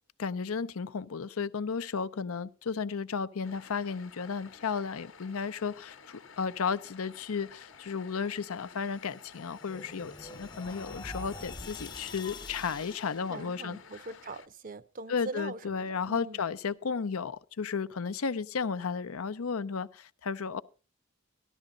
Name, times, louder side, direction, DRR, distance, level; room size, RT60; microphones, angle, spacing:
voice 1, 0.2-13.8 15.1-20.6, left 5 dB, 80° left, 0.6 m, -34 dB
sound 1, 3.4-14.5, left 5 dB, 60° left, 0.9 m, -53 dB
sound 2, 8.8-13.3, left 3 dB, 20° left, 0.5 m, -45 dB
voice 2, 13.3-16.4, right 3 dB, 40° right, 0.5 m, -42 dB
13.5 x 12.0 x 3.8 m
head